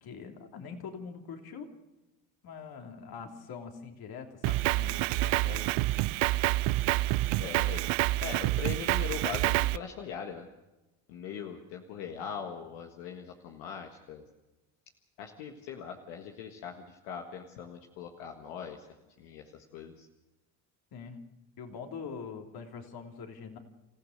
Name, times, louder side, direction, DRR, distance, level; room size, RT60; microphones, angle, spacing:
voice 1, 0.0-1.7 2.4-5.7 20.9-21.2 21.6-23.6, left 5 dB, 60° left, 4 dB, 3.1 m, -43 dB
Drum kit, 4.4-9.8, right 18 dB, 70° right, 0.7 m, -28 dB
voice 2, 7.4-7.8 8.2-10.5 11.1-14.2 15.2-18.9 19.2-20.1, left 7 dB, 80° left, 3 dB, 1.8 m, -41 dB
28.5 x 15.0 x 6.5 m, 1.0 s
hypercardioid pair, 65°, 42 cm